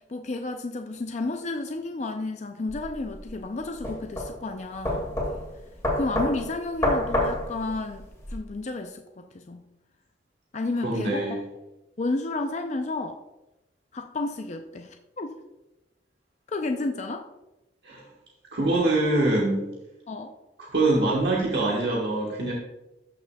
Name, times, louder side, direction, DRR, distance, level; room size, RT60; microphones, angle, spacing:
voice 1, 0.0-5.1 5.9-9.6 10.5-11.3 12.0-13.2 13.9-15.4 16.5-17.3 20.1-20.3, left 2 dB, 40° left, 5 dB, 0.4 m, -31 dB
sound 1, 2.7-8.4, left 1 dB, 15° left, 2.1 m, -29 dB
voice 2, 10.8-11.4 17.8-18.0 18.5-19.7 20.6-22.5, right 2 dB, 65° right, -4 dB, 1.3 m, -24 dB
13.0 x 6.0 x 2.3 m, 0.98 s
head